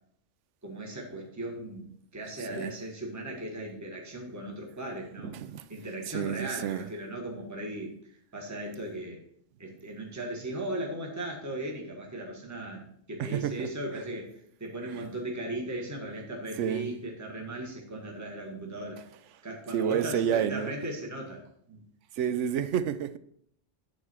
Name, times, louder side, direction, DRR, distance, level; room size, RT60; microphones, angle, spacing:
voice 1, 0.6-5.4 5.7-7.9 8.3-9.2 9.6-12.8 13.1-19.0 19.4-21.8, right 1 dB, 15° right, 1.4 m, -37 dB
voice 2, 2.4-2.8 5.2-5.7 6.1-6.9 13.2-13.7 14.9-15.0 16.6-16.9 19.7-20.7 22.1-23.2, right 9 dB, 75° right, 0.9 m, -30 dB
8.9 x 4.0 x 6.1 m
omnidirectional pair, 1.3 m